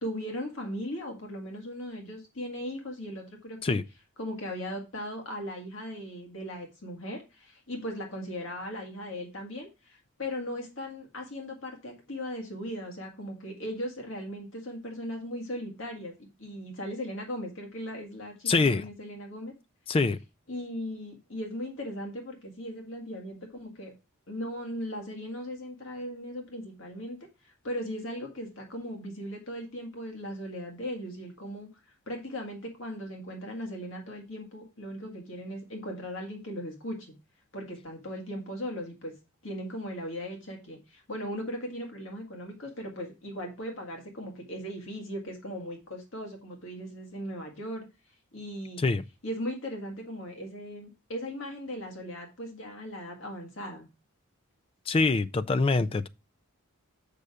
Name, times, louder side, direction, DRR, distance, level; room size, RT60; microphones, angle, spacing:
voice 1, 0.0-3.8 4.2-16.1 16.4-19.5 20.5-23.9 24.3-37.2 37.5-39.2 39.4-47.9 48.3-48.8 49.2-53.9, equal, 60° left, 1.9 m, -38 dB
voice 2, 18.5-18.8 19.9-20.2 48.8-49.0 54.9-56.1, left 3 dB, 25° left, 0.3 m, -24 dB
6.7 x 5.4 x 4.8 m
head